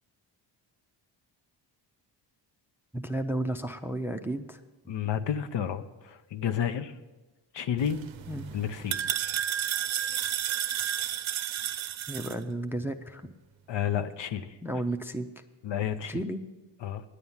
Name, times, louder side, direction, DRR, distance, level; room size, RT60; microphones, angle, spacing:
voice 1, 2.9-4.6 8.3-8.6 12.1-13.3 14.6-15.3 16.1-16.4, right 1 dB, 5° right, 7 dB, 0.4 m, -33 dB
voice 2, 4.9-5.8 6.1-6.9 7.5-8.0 8.5-9.0 13.7-14.5 15.6-16.2 16.8-17.0, left 9 dB, 70° left, 10 dB, 0.8 m, -30 dB
sound 1, 7.8-12.3, right 10 dB, 90° right, 0.7 m, -32 dB
10.0 x 9.4 x 7.2 m, 1.2 s
wide cardioid pair, 150°, 45 cm